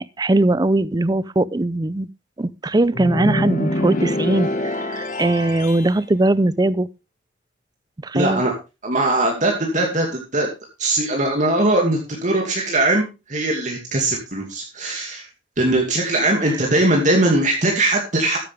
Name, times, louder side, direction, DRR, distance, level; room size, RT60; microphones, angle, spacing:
voice 1, 0.0-2.1 2.4-6.9 8.0-8.4, right 2 dB, 20° right, 0.5 m, -20 dB
sound 1, 2.9-6.0, left 1 dB, 45° left, 1.9 m, -25 dB
voice 2, 8.1-8.5 8.8-10.5 10.8-15.3 15.6-18.4, right 2 dB, 40° right, 2.5 m, -20 dB
13.5 x 10.0 x 3.5 m
head